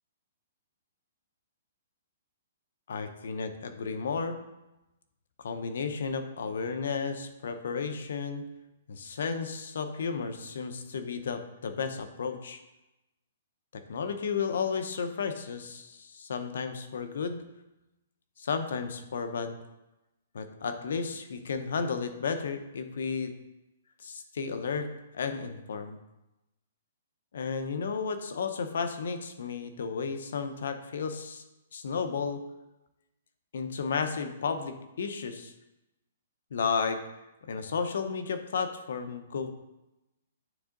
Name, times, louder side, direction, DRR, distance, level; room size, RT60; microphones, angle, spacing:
voice 1, 2.9-4.4 5.4-8.4 8.9-12.6 13.7-17.4 18.4-19.6 20.3-23.3 24.0-24.9 25.1-26.0 27.3-31.4 31.7-32.4 33.5-35.5 36.5-37.0 37.5-39.5, left 5 dB, 70° left, 8 dB, 0.8 m, -33 dB
9.2 x 3.5 x 3.9 m, 0.96 s
hypercardioid pair, 160°, 0 cm